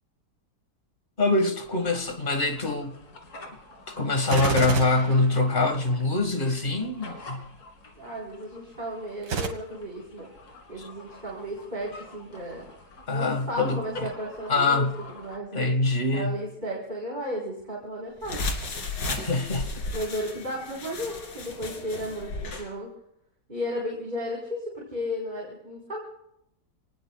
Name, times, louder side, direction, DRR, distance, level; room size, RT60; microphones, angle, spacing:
voice 1, 1.2-3.0 3.9-7.5 13.1-14.1 14.5-15.0 15.5-16.4 19.1-19.8, left 2 dB, 30° left, 1.9 m, -24 dB
sound 1, 1.6-15.4, left 2 dB, 55° left, 2.6 m, -46 dB
Gunshot gunfire, 4.2-6.0 9.2-9.5, right 6 dB, 75° right, 2.3 m, -29 dB
voice 2, 8.0-10.3 10.7-12.6 13.1-15.6 16.1-18.4 19.9-22.9 23.5-26.0, equal, 25° right, 4.7 m, -34 dB
sound 2, 18.2-22.7, left 3 dB, 80° left, 3.0 m, -34 dB
28.0 x 19.5 x 2.4 m
omnidirectional pair, 1.9 m